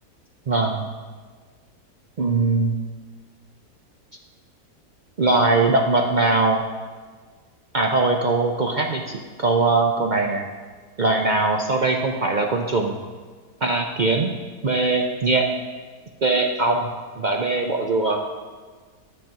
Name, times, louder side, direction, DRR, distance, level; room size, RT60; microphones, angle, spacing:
voice 1, 0.5-0.9 2.2-2.8 5.2-6.6 7.7-10.4 11.0-12.9 13.6-14.3 14.6-15.5 16.2-16.9 17.2-18.2, right 3 dB, 70° right, 2 dB, 0.4 m, -21 dB
9.2 x 6.9 x 5.8 m, 1.5 s
omnidirectional pair, 1.7 m